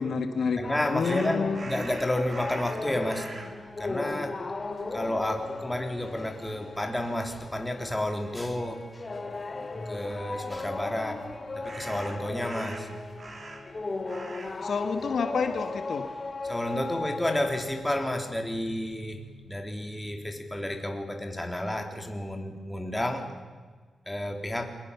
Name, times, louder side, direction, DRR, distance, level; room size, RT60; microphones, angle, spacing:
voice 1, 0.0-0.6 0.9-1.6 14.6-16.0, left 5 dB, 70° left, 7 dB, 1.9 m, -28 dB
sound 1, 0.6-18.4, left 3 dB, 35° left, 2.9 m, -37 dB
voice 2, 0.6-3.3 3.8-4.4 4.9-8.8 9.9-11.3 11.6-12.9 16.4-23.3 24.1-24.6, left 1 dB, 10° left, 4 dB, 4.0 m, -31 dB
sound 2, 1.0-3.6 4.4-4.5 4.9-5.8 11.6-13.8 14.1-14.6 14.9-16.5, right 3 dB, 45° right, 4.5 m, -44 dB
28.5 x 21.5 x 7.1 m, 1.4 s
cardioid pair, 80°, 0 cm